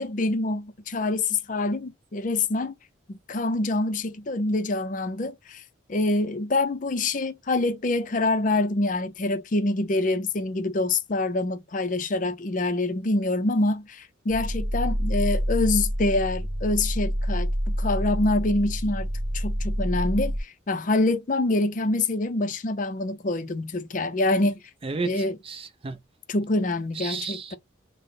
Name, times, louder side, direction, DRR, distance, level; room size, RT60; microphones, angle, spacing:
voice 1, 0.0-2.7 3.1-5.6 5.9-19.1 19.3-24.6 25.0-25.4 26.3-27.6, left 2 dB, 40° left, 0.5 m, -26 dB
sound 1, 14.3-20.4, equal, 65° right, 1.0 m, -27 dB
voice 2, 24.8-26.0 26.9-27.6, right 4 dB, 30° right, 0.4 m, -33 dB
3.7 x 2.1 x 3.6 m
head